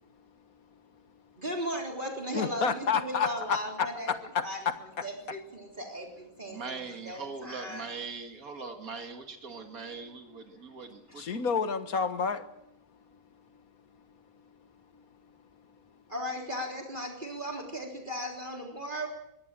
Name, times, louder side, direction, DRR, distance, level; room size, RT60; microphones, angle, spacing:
voice 1, 1.4-4.1 4.4-6.8 7.1-7.9 11.1-11.3 16.1-19.1, equal, 35° right, 3.8 m, -37 dB
voice 2, 2.3-5.0 11.1-12.5, left 6 dB, 80° left, 1.9 m, -30 dB
voice 3, 6.5-11.4, right 4 dB, 80° right, 2.5 m, -41 dB
22.5 x 17.5 x 7.7 m
omnidirectional pair, 1.5 m